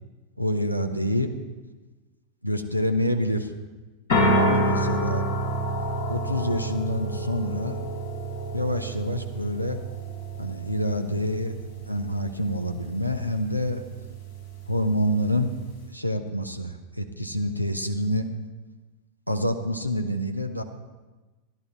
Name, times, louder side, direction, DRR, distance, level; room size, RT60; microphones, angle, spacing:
voice 1, 0.4-1.3 2.4-3.5 4.4-5.2 6.1-7.8 8.5-9.8 10.4-11.5 11.9-13.8 14.7-15.6 15.9-18.3 19.3-20.6, left 1 dB, 90° left, 6 dB, 0.8 m, -27 dB
sound 1, 4.1-15.9, right 1 dB, 60° left, 2.9 m, -29 dB
13.5 x 11.0 x 4.2 m, 1.2 s
figure-of-eight pair, 90°, 0 cm